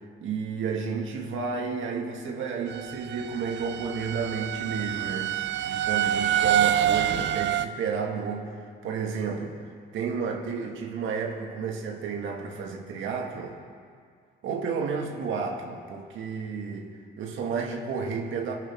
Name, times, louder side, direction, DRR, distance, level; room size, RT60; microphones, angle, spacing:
voice 1, 0.2-8.6 8.8-9.6 9.9-13.6 14.4-18.5, right 5 dB, 80° right, 1 dB, 1.9 m, -32 dB
sound 1, 2.7-7.7, right 10 dB, 65° right, 0.5 m, -26 dB
26.0 x 11.5 x 3.6 m, 2.1 s
cardioid pair, 90°, 20 cm